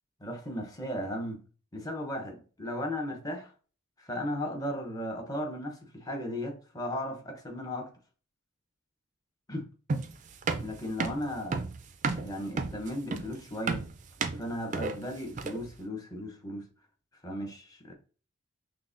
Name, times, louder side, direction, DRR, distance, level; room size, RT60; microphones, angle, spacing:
voice 1, 0.2-1.4 1.7-3.5 4.0-7.9 9.5-9.6 10.6-11.6 12.2-13.8 14.3-16.7 17.2-17.9, equal, 15° left, 0.7 m, -36 dB
sound 1, 9.9-15.7, right 4 dB, 35° right, 0.3 m, -32 dB
5.8 x 2.1 x 2.5 m
head